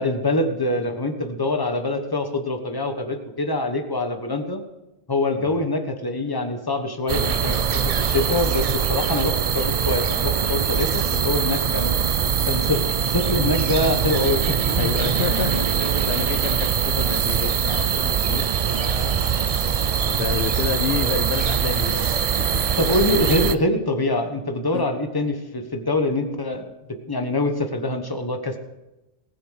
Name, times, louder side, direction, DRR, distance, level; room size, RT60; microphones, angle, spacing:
voice 1, 0.0-4.6 5.1-12.0 12.4-15.6 22.8-28.6, left 2 dB, 20° left, 6 dB, 1.2 m, -25 dB
sound 1, 7.1-23.6, right 7 dB, 50° right, 0.4 m, -22 dB
voice 2, 14.7-18.5 18.7-19.3 20.0-22.6 24.7-25.0, left 9 dB, 75° left, 11 dB, 0.8 m, -30 dB
19.5 x 7.0 x 6.5 m, 1.0 s
omnidirectional pair, 1.1 m